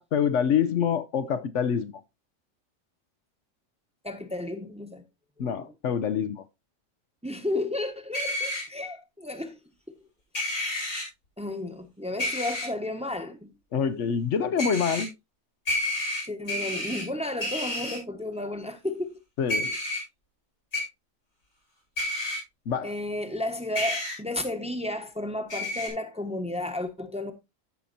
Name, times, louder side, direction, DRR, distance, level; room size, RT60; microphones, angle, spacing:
voice 1, 0.0-2.0 5.4-6.4 13.7-15.1 19.4-19.8 22.7-22.9, left 7 dB, 65° left, 1.0 m, -26 dB
voice 2, 4.0-5.0 5.4-5.5 7.2-9.6 11.4-13.5 16.2-19.2 22.8-27.3, left 1 dB, 5° right, 1.1 m, -33 dB
sound 1, 8.1-8.6 10.3-11.0 12.2-12.7 14.6-15.0 15.7-17.0 17.4-18.0 19.5-20.0 20.7-20.8 22.0-22.4 23.7-24.2 25.5-25.9, left 1 dB, 85° left, 4.9 m, -30 dB
15.5 x 5.7 x 2.6 m
omnidirectional pair, 1.4 m